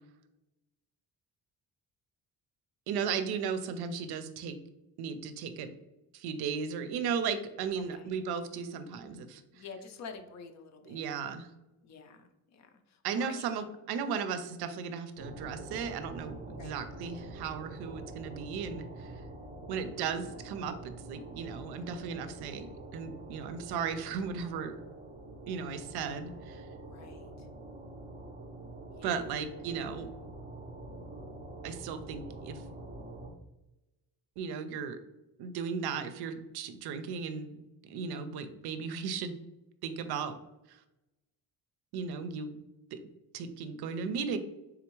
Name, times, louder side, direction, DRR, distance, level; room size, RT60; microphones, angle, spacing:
voice 1, 2.9-4.6 5.0-5.8 6.1-9.6 10.9-11.5 13.0-19.1 19.7-24.8 25.5-26.7 29.0-30.1 31.6-32.6 34.4-35.0 35.4-39.4 39.8-40.3 40.7-40.8 41.9-42.6 42.9-43.0 43.3-44.4, right 6 dB, 85° right, 10 dB, 0.5 m, -36 dB
voice 2, 9.5-11.1 11.8-13.6 16.5-16.8 26.8-27.5 28.9-29.3, left 5 dB, 45° left, 7 dB, 0.5 m, -49 dB
sound 1, 15.2-33.3, right 2 dB, 20° right, 0.4 m, -46 dB
3.6 x 3.4 x 3.0 m, 0.96 s
cardioid pair, 160°, 38 cm